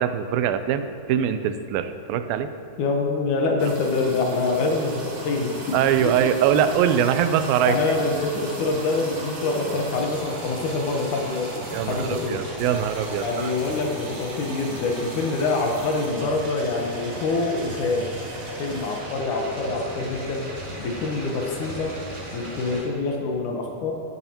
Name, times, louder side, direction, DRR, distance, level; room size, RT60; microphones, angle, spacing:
voice 1, 0.0-2.5 5.7-7.8 11.7-13.5, right 9 dB, 90° right, 10 dB, 2.4 m, -22 dB
voice 2, 2.8-5.8 7.6-12.4 13.2-18.1 18.6-20.5 20.8-22.0 22.3-24.0, left 3 dB, 70° left, 1 dB, 2.4 m, -25 dB
sound 1, 3.6-22.8, right 1 dB, 55° right, 3.3 m, -36 dB
17.5 x 11.0 x 3.0 m, 2.9 s
omnidirectional pair, 4.0 m